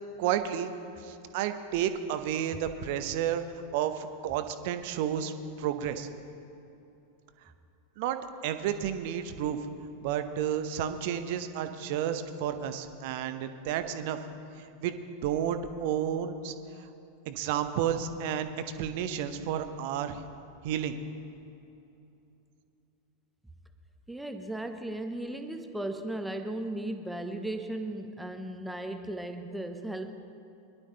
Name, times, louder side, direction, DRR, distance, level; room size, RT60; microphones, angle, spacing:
voice 1, 0.2-0.7 1.0-3.4 3.7-5.3 5.6-6.1 8.0-9.6 10.0-14.2 14.8-16.5 16.8-16.9 17.3-18.5 18.8-20.2 20.6-21.0, right 9 dB, 50° right, 9 dB, 0.9 m, -31 dB
voice 2, 24.1-30.1, right 1 dB, 5° right, 7 dB, 1.0 m, -36 dB
23.0 x 11.5 x 3.3 m, 2.8 s
figure-of-eight pair, 90°, 0 cm